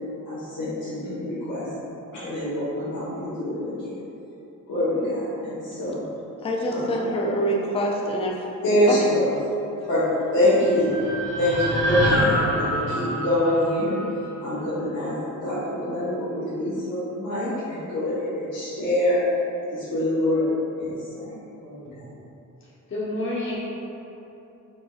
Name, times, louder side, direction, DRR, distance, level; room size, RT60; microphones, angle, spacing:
voice 1, 0.2-1.7 2.1-4.0 4.7-6.0 6.7-7.0 8.6-9.3 9.8-10.9 11.4-14.0 14.4-19.2 19.6-20.5 20.8-21.3 21.6-22.1, left 1 dB, 80° left, -12 dB, 1.1 m, -25 dB
voice 2, 6.4-8.5 8.9-9.1, equal, 20° left, -1 dB, 0.4 m, -25 dB
sound 1, 10.2-14.5, equal, 55° right, 0.6 m, -27 dB
voice 3, 22.9-23.6, left 1 dB, 35° left, -8 dB, 1.0 m, -28 dB
4.9 x 4.2 x 2.4 m, 3.0 s
wide cardioid pair, 155°, 33 cm